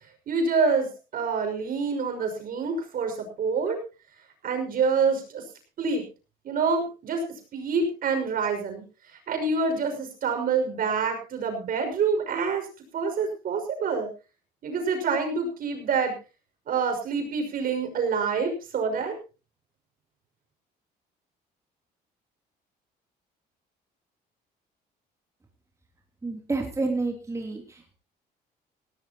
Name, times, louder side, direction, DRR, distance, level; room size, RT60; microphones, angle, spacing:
voice 1, 0.3-3.8 4.4-5.4 5.8-6.0 6.4-7.2 7.5-8.8 9.3-12.7 12.9-14.1 14.6-16.1 16.7-19.1, right 5 dB, 55° right, 5 dB, 5.9 m, -26 dB
voice 2, 26.2-27.9, right 3 dB, 15° right, 1 dB, 3.1 m, -29 dB
19.0 x 17.5 x 3.0 m, 0.32 s
cardioid pair, 110°, 17 cm